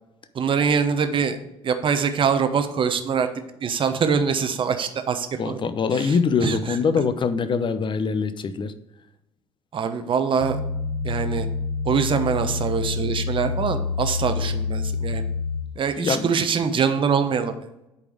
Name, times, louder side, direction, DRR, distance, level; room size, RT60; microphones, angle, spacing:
voice 1, 0.3-1.4 1.6-3.3 3.6-5.6 5.9-6.1 6.4-6.6 9.7-10.6 11.0-11.5 11.8-15.2 15.8-17.6, right 6 dB, 35° right, 9 dB, 1.0 m, -23 dB
voice 2, 5.4-8.7 15.9-16.3, left 5 dB, 35° left, 11 dB, 0.8 m, -23 dB
sound 1, 10.4-15.6, left 4 dB, 90° right, 1.0 m, -27 dB
8.6 x 5.1 x 4.9 m, 0.91 s
figure-of-eight pair, 60°, 14 cm